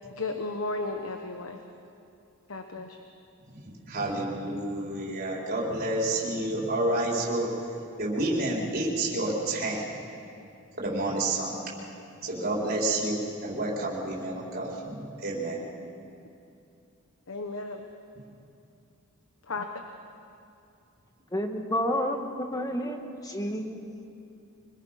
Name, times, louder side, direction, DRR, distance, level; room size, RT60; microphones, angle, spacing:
voice 1, 0.2-1.6 2.5-3.0 17.3-17.9 19.5-19.7, left 3 dB, 75° left, 5 dB, 1.2 m, -34 dB
voice 2, 3.5-7.5 8.0-9.9 10.8-11.6 12.2-15.6, right 2 dB, 45° right, -4 dB, 4.4 m, -29 dB
voice 3, 21.3-24.1, equal, 15° left, 3 dB, 1.6 m, -30 dB
25.0 x 21.0 x 5.8 m, 2.6 s
head